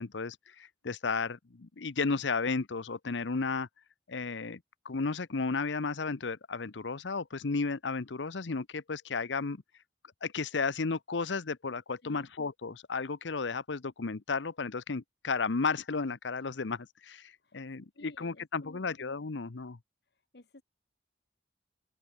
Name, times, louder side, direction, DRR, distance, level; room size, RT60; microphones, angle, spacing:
voice 1, 0.0-3.7 4.1-4.6 4.8-9.6 10.2-19.8, left 4 dB, 85° left, 0.8 m, -33 dB
voice 2, 17.9-18.9 20.1-20.6, left 1 dB, 65° left, 1.5 m, -54 dB
open air
head